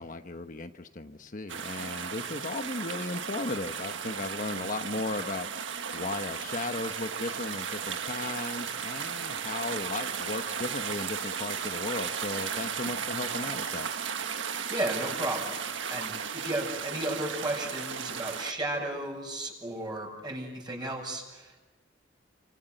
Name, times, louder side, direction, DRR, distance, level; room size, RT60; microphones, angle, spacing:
voice 1, 0.0-5.5 5.9-13.9, left 2 dB, 45° left, 7 dB, 1.1 m, -36 dB
sound 1, 1.5-18.5, right 7 dB, 75° right, 1.6 m, -35 dB
voice 2, 14.5-15.6 15.9-21.6, right 1 dB, 25° right, 1 dB, 6.9 m, -34 dB
29.5 x 25.5 x 7.9 m, 1.1 s
head